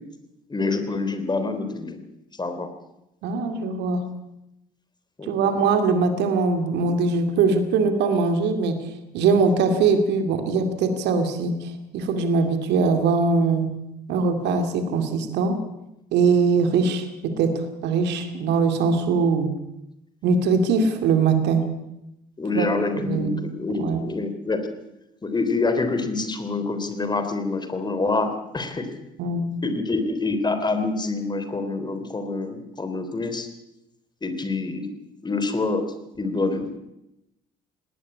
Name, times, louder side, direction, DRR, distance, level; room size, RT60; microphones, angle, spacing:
voice 1, 0.5-2.0 2.4-2.7 5.2-5.3 22.4-24.6 25.2-28.9 29.6-33.5 34.2-34.9 35.2-35.9 36.2-36.8, left 3 dB, 20° left, 8 dB, 3.5 m, -26 dB
voice 2, 3.2-4.1 5.2-8.9 9.1-13.7 14.1-15.6 16.1-19.6 20.2-21.7 22.5-22.7 22.9-23.4 23.7-24.0 29.2-29.7, right 4 dB, 60° right, 7 dB, 2.4 m, -22 dB
18.5 x 18.5 x 8.5 m, 0.89 s
figure-of-eight pair, 50°, 20 cm